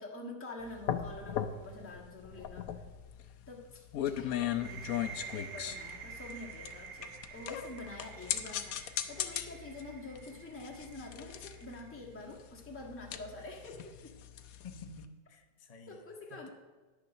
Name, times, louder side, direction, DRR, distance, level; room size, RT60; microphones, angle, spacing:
voice 1, 0.0-2.8 3.5-14.1 15.9-16.5, left 2 dB, 10° left, -2 dB, 1.3 m, -47 dB
sound 1, 0.6-15.0, left 10 dB, 65° left, 1.0 m, -38 dB
sound 2, 4.5-12.0, right 6 dB, 85° right, 1.7 m, -49 dB
voice 2, 14.6-16.0 16.3-16.5, left 4 dB, 35° left, 4 dB, 0.6 m, -51 dB
10.0 x 6.8 x 6.4 m, 1.3 s
omnidirectional pair, 1.9 m